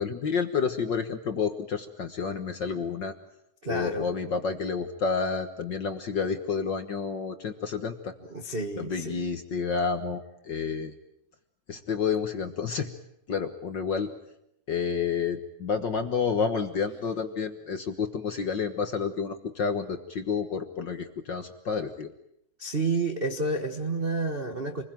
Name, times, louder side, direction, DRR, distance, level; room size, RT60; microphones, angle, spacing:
voice 1, 0.0-3.1 3.6-8.2 8.7-10.9 11.7-12.9 13.3-14.1 14.7-22.1, left 5 dB, 50° left, 8 dB, 1.6 m, -30 dB
voice 2, 3.6-4.1 8.3-9.2 22.6-24.8, right 3 dB, 30° right, 4 dB, 1.0 m, -30 dB
28.0 x 21.0 x 9.2 m, 0.78 s
omnidirectional pair, 3.4 m